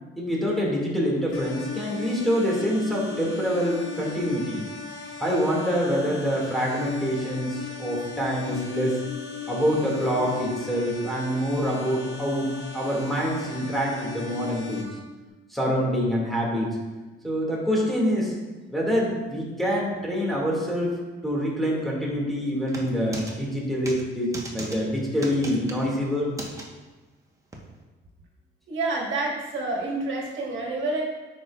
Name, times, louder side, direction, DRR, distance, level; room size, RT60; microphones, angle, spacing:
voice 1, 0.2-4.6 5.2-9.0 9.5-14.9 15.5-16.7 17.2-18.3 18.7-20.9 21.2-26.3, equal, ahead, -5 dB, 2.2 m, -26 dB
sound 1, 1.3-14.8, left 6 dB, 80° left, 1.3 m, -38 dB
sound 2, 22.7-23.3 23.9-24.0 24.3-24.8 25.2-25.8 26.4-26.6 27.5-27.6, right 1 dB, 15° right, 1.2 m, -36 dB
voice 2, 28.7-31.0, right 2 dB, 75° right, -2 dB, 1.6 m, -28 dB
9.4 x 5.3 x 2.5 m, 1.2 s
cardioid pair, 90°, 20 cm